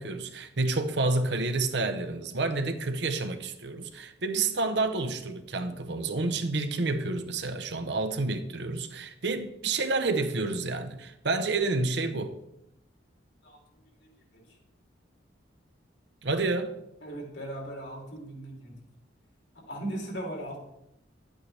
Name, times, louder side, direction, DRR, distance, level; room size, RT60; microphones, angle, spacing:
voice 1, 0.0-12.3 16.2-16.7, right 3 dB, 65° right, 0.8 m, -29 dB
voice 2, 17.0-18.7 19.7-20.6, right 1 dB, 75° left, 3.0 m, -37 dB
11.0 x 8.6 x 3.3 m
head